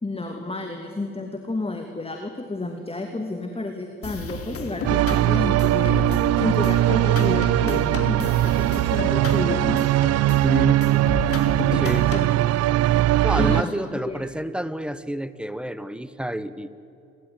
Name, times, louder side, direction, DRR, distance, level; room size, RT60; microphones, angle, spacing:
voice 1, 0.0-6.0 6.4-9.9 11.9-12.3 13.4-14.2, left 2 dB, 20° left, 4 dB, 2.7 m, -30 dB
sound 1, 4.0-12.4, left 3 dB, 45° left, 3.1 m, -32 dB
sound 2, 4.9-13.6, right 15 dB, 50° right, 0.5 m, -20 dB
voice 2, 10.4-10.8 11.7-12.1 13.2-16.7, right 1 dB, 5° right, 14 dB, 1.4 m, -28 dB
29.5 x 13.0 x 9.8 m, 2.6 s
hypercardioid pair, 50°, 32 cm